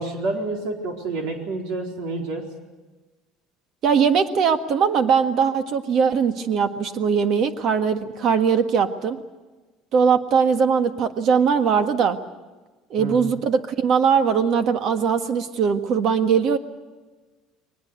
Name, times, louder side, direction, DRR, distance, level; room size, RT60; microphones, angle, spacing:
voice 1, 0.0-2.5 13.0-13.3, right 2 dB, 75° right, 2 dB, 4.2 m, -28 dB
voice 2, 3.8-9.2 9.9-12.2 12.9-16.6, right 6 dB, 55° right, 8 dB, 1.6 m, -20 dB
22.0 x 20.0 x 8.2 m, 1.2 s
cardioid pair, 120°, 0 cm